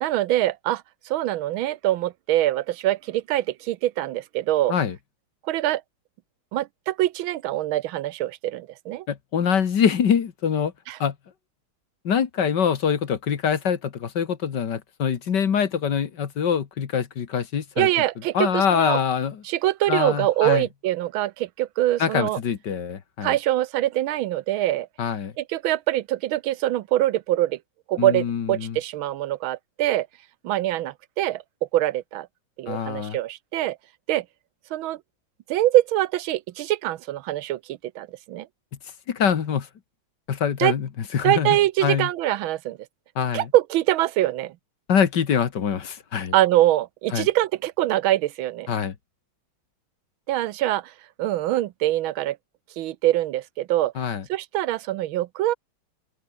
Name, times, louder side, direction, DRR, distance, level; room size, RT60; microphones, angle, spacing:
voice 1, 0.0-4.7 5.4-5.8 6.5-9.1 10.9-11.0 17.8-19.0 19.4-22.4 23.2-24.9 25.4-27.6 27.9-30.1 30.4-31.4 31.7-32.3 32.6-33.8 34.1-34.2 34.7-35.0 35.5-38.5 40.6-40.7 41.2-42.8 43.3-44.5 46.3-48.7 50.3-50.9 51.2-52.4 52.8-53.9 54.3-55.5, right 14 dB, 80° right, 1.5 m, -24 dB
voice 2, 9.1-10.7 11.0-11.2 12.0-17.9 18.3-19.4 19.9-20.6 22.0-23.4 25.0-25.3 28.0-28.8 32.7-33.2 39.1-39.7 40.3-42.1 43.2-43.5 44.9-46.3 47.1-47.3 48.7-49.0 54.0-54.2, left 7 dB, 60° left, 2.1 m, -24 dB
omnidirectional pair, 2.2 m